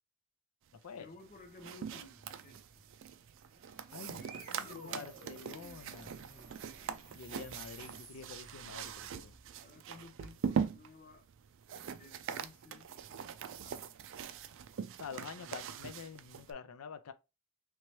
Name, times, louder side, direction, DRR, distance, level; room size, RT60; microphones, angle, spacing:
voice 1, 0.9-2.8 4.1-5.5 9.6-11.3 12.0-13.3 13.6-14.2 15.4-15.5, left 3 dB, 40° left, 0.8 m, -55 dB
sound 1, 1.2-16.5, right 7 dB, 60° right, 0.4 m, -42 dB
sound 2, 3.3-9.6, right 3 dB, 40° right, 1.2 m, -55 dB
voice 2, 3.9-6.2 7.1-9.4 15.0-17.1, left 6 dB, 85° left, 0.5 m, -47 dB
3.2 x 3.0 x 3.0 m
head